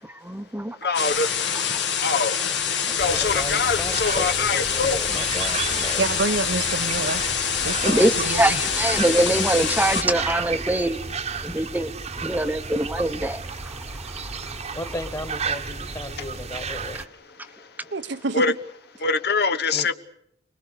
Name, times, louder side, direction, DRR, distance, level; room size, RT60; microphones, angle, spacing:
voice 1, 0.2-0.8 1.7-1.9 7.8-11.0 11.4-11.9 12.2-14.7, right 1 dB, 10° right, 0.9 m, -24 dB
voice 2, 0.8-1.3 2.0-2.4 3.0-5.0 18.3-18.5 19.0-19.9, left 4 dB, 65° left, 1.2 m, -23 dB
sound 1, 0.9-10.0, left 7 dB, 80° left, 2.6 m, -26 dB
voice 3, 2.9-6.0 14.7-17.0 19.7-19.9, left 1 dB, 20° left, 1.9 m, -35 dB
sound 2, 3.0-17.1, right 4 dB, 40° right, 1.2 m, -33 dB
voice 4, 6.0-7.2 7.6-8.4 17.9-18.4, right 3 dB, 75° right, 1.0 m, -27 dB
29.5 x 21.0 x 6.7 m
head